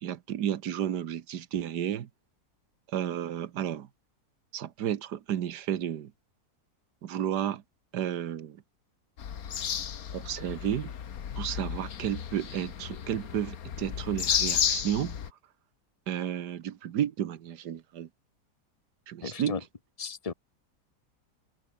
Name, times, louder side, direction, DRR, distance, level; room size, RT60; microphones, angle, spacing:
voice 1, 0.0-2.1 2.9-3.9 4.5-6.1 7.0-7.6 7.9-8.6 10.1-10.9 11.4-15.1 16.1-18.1 19.1-19.5, right 10 dB, 90° right, 1.6 m, -32 dB
sound 1, 9.2-15.3, left 8 dB, 65° left, 1.6 m, -33 dB
voice 2, 19.2-19.6 20.0-20.3, left 5 dB, 25° left, 1.3 m, -34 dB
omnidirectional pair, 1.7 m